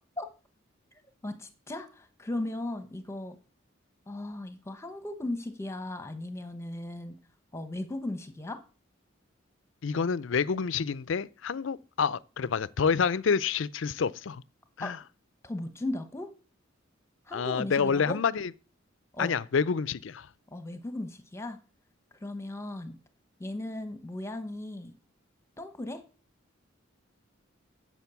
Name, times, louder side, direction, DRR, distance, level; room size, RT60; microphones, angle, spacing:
voice 1, 1.2-3.3 4.1-7.1 7.5-8.6 14.8-14.9 15.4-16.3 17.2-18.2 19.1-19.4 20.5-21.6 22.2-23.0 23.4-24.9 25.6-26.0, left 1 dB, 15° left, 1.0 m, -37 dB
voice 2, 9.8-14.4 14.8-15.0 17.3-18.5 19.2-20.3, left 6 dB, 65° left, 0.5 m, -28 dB
10.5 x 7.5 x 7.0 m
head